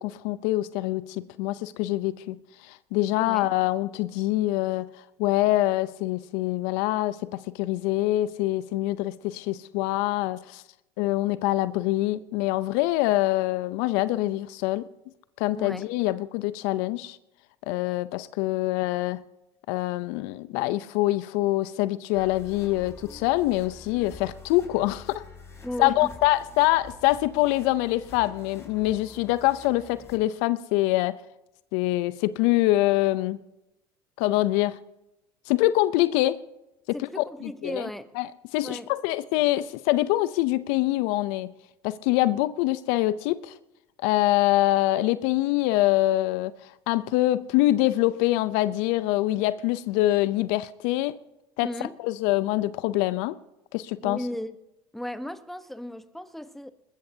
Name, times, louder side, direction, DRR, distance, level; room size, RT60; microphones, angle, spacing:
voice 1, 0.0-2.4 2.6-4.9 5.2-10.6 11.0-14.8 15.4-17.2 17.7-19.2 19.7-25.2 25.8-31.2 31.7-33.4 34.2-34.8 35.5-36.4 36.9-37.9 38.2-41.5 41.8-43.5 44.0-51.2 51.6-51.7 52.0-53.4 53.7-54.2, left 17 dB, 70° left, 0.6 m, -25 dB
voice 2, 3.1-3.5 15.6-15.9 25.6-26.1 36.9-38.1 38.6-38.9 51.6-52.0 54.0-54.6 54.9-56.7, left 1 dB, ahead, 1.1 m, -35 dB
sound 1, 22.1-30.1, left 3 dB, 20° left, 5.3 m, -47 dB
20.5 x 20.5 x 2.8 m
hypercardioid pair, 80°, 13 cm